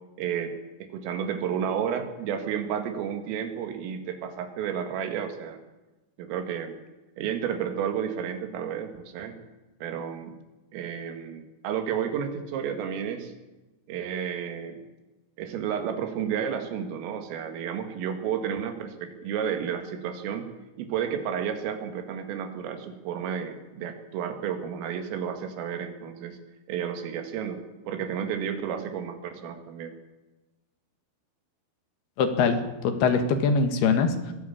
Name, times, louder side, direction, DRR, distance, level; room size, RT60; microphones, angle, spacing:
voice 1, 0.2-0.5 0.8-5.6 6.2-6.8 7.2-9.4 9.8-10.3 10.7-13.3 13.9-14.8 15.4-20.5 20.8-26.4 26.7-27.6 27.9-29.9, right 8 dB, 90° right, 7 dB, 4.6 m, -31 dB
voice 2, 32.2-34.3, left 5 dB, 60° left, 7 dB, 3.3 m, -23 dB
22.0 x 15.5 x 8.6 m, 1.1 s
omnidirectional pair, 5.7 m